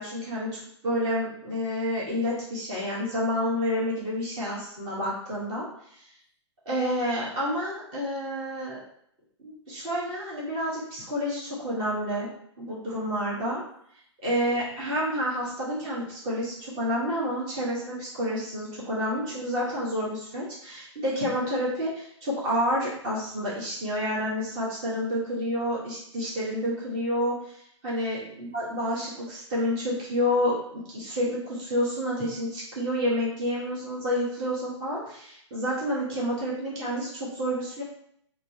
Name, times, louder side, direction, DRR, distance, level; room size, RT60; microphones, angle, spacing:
voice 1, 0.0-5.7 6.0-6.1 6.6-8.8 9.4-12.3 12.6-13.6 14.2-37.8, equal, 35° right, -7 dB, 1.2 m, -29 dB
3.0 x 2.0 x 2.8 m, 0.69 s
hypercardioid pair, 125°, 16 cm